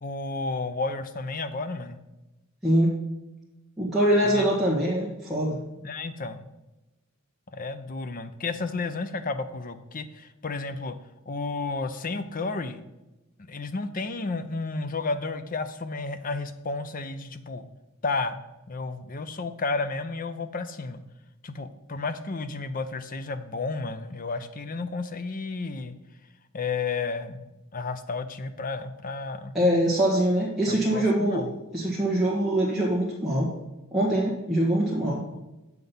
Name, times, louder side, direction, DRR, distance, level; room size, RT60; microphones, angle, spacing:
voice 1, 0.0-2.0 4.2-4.5 5.8-6.5 7.5-10.9 11.3-12.8 13.4-17.7 18.0-18.4 18.7-21.0 21.4-25.9 26.5-27.5 27.7-29.5 30.7-31.5 35.3-35.4, left 3 dB, 40° left, 10 dB, 0.6 m, -32 dB
voice 2, 3.8-5.6 29.5-33.5 33.9-35.2, right 1 dB, ahead, -6 dB, 1.4 m, -23 dB
7.5 x 5.8 x 5.4 m, 1.0 s
head